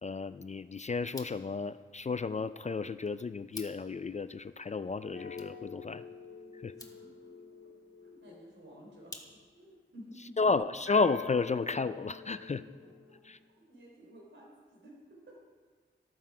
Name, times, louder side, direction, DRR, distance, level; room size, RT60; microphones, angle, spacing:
voice 1, 0.0-6.0 6.6-6.7 10.4-12.6 13.3-13.4, left 4 dB, 35° left, 13 dB, 0.4 m, -32 dB
sound 1, 1.0-9.7, left 1 dB, 15° left, 1.4 m, -54 dB
sound 2, 5.1-9.7 10.9-13.5, left 6 dB, 75° left, 1.6 m, -46 dB
voice 2, 6.8-7.3 8.0-9.2 9.6-10.4 12.8-13.2 13.5-15.4, equal, 70° right, -2 dB, 3.5 m, -54 dB
13.0 x 13.0 x 4.8 m, 1.5 s
wide cardioid pair, 100°, 20 cm